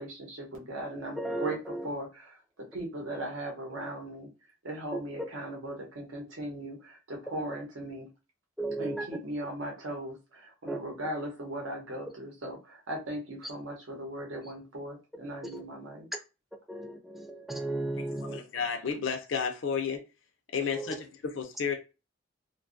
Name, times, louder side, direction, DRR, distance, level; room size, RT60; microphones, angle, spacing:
voice 1, 0.0-1.6 1.8-4.3 4.6-8.1 8.8-16.1, right 1 dB, 80° right, 0.8 m, -38 dB
voice 2, 0.9-1.9 4.9-5.0 8.6-9.1 10.7-10.8 15.5-15.6 16.7-18.4 20.7-20.9, right 2 dB, ahead, 0.3 m, -35 dB
voice 3, 18.1-20.0 20.5-21.7, left 6 dB, 65° left, 0.4 m, -32 dB
2.5 x 2.3 x 2.5 m
head